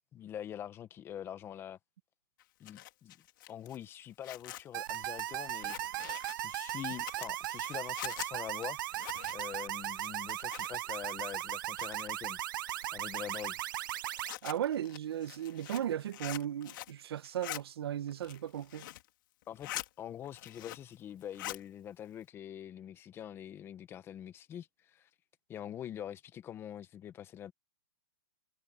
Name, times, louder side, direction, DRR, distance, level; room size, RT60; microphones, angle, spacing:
voice 1, 0.1-1.8 2.6-3.1 3.5-5.8 6.3-8.8 9.3-12.4 12.9-13.6 19.5-25.1 25.5-27.5, left 10 dB, 15° left, 1.2 m, -44 dB
Zipper (clothing), 2.4-11.0 11.2-12.2 12.7-17.0 17.2-17.6 18.1-19.1 19.4-19.9 20.2-21.0 21.2-21.6, left 15 dB, 50° left, 3.6 m, -45 dB
sound 1, 4.7-14.3, right 14 dB, 50° right, 0.4 m, -38 dB
voice 2, 14.4-18.9, right 10 dB, 70° right, 1.0 m, -36 dB
hypercardioid pair, 155°, 14 cm